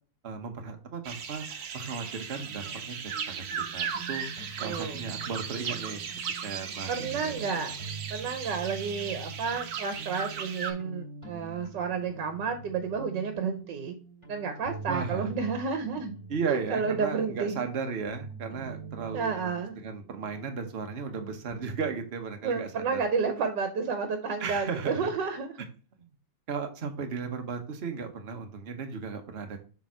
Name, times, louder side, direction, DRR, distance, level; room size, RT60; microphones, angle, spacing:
voice 1, 0.2-1.4 1.7-3.0 3.3-4.3 4.6-6.0 6.4-7.3 14.9-15.3 16.3-19.3 19.8-23.1 24.4-25.1 26.5-29.6, right 5 dB, 40° right, 5 dB, 1.2 m, -35 dB
sound 1, 1.0-10.7, right 7 dB, 65° right, 1.3 m, -37 dB
sound 2, 2.4-21.9, right 4 dB, 25° right, 2.6 m, -45 dB
voice 2, 4.6-5.0 6.9-7.7 8.1-14.0 14.3-16.1 16.5-17.7 19.1-19.7 22.4-25.5, right 5 dB, 85° right, 7 dB, 1.5 m, -31 dB
6.9 x 3.6 x 4.3 m, 0.37 s
omnidirectional pair, 1.9 m